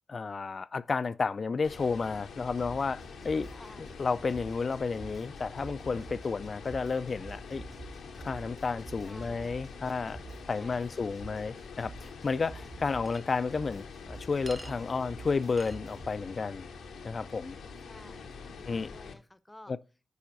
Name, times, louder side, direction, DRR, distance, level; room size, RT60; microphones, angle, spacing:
voice 1, 0.1-3.5 3.8-7.6 8.2-10.2 10.5-16.7 17.0-17.6 18.6-18.9 19.7-19.8, left 4 dB, 55° left, 0.3 m, -32 dB
sound 1, 1.6-19.1, left 4 dB, 90° left, 0.8 m, -46 dB
sound 2, 1.7-16.1, right 3 dB, 55° right, 1.8 m, -49 dB
voice 2, 3.5-4.0 9.0-9.7 10.5-11.1 17.7-19.8, left 1 dB, 15° left, 0.7 m, -53 dB
Chink clink, 13.1-13.2 14.5-14.7 15.6-15.8, right 1 dB, 25° right, 1.1 m, -45 dB
13.0 x 4.9 x 2.6 m
supercardioid pair, 40°, 0 cm